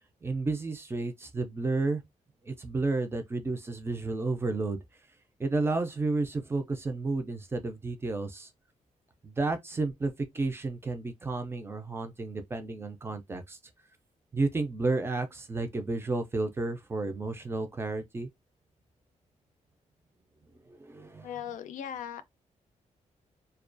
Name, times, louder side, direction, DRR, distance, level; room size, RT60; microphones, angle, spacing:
voice 1, 0.2-2.0 2.5-4.8 5.4-8.5 9.2-13.6 14.3-18.3 20.7-21.3, right 3 dB, 20° right, 0.4 m, -31 dB
voice 2, 21.2-22.2, left 9 dB, 90° left, 0.4 m, -38 dB
2.3 x 2.2 x 2.5 m
wide cardioid pair, 165°, 13 cm